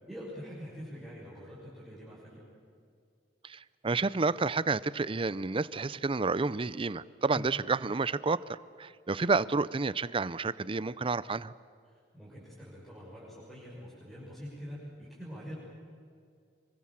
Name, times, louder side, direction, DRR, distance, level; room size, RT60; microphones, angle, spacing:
voice 1, 0.1-2.4 7.3-7.5 12.1-15.5, equal, ahead, -8 dB, 6.2 m, -44 dB
voice 2, 3.4-8.4 8.8-11.5, right 4 dB, 30° right, 18 dB, 0.5 m, -30 dB
25.5 x 23.5 x 7.5 m, 2.3 s
head